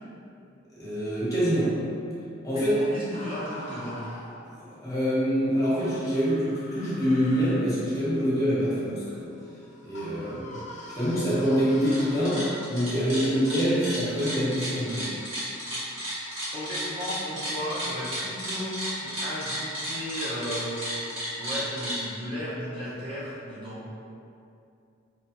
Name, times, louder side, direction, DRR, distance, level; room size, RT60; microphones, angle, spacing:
voice 1, 0.7-1.8 2.4-2.7 4.4-9.2 9.8-10.6 10.9-15.2, equal, 15° left, -9 dB, 1.0 m, -25 dB
voice 2, 2.5-4.0 10.2-10.4 16.5-18.8 19.2-20.8 21.4-24.0, equal, 25° right, -10 dB, 0.6 m, -35 dB
sound 1, 3.1-4.8 5.8-12.5, left 2 dB, 35° left, 0.5 m, -44 dB
sound 2, 11.9-12.0 12.3-22.0, equal, 90° right, 1.4 m, -33 dB
4.2 x 3.3 x 2.8 m, 2.6 s
head